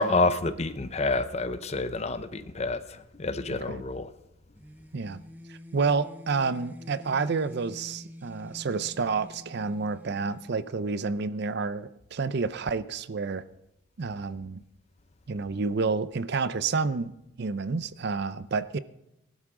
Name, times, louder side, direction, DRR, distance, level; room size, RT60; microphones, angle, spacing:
voice 1, 0.0-4.1, left 3 dB, 30° left, 12 dB, 0.6 m, -28 dB
sound 1, 4.5-11.2, left 1 dB, 10° right, 0.9 m, -47 dB
voice 2, 5.5-13.4 14.0-14.6 15.3-18.8, right 4 dB, 50° right, 15 dB, 0.5 m, -29 dB
19.0 x 12.5 x 3.7 m, 0.86 s
head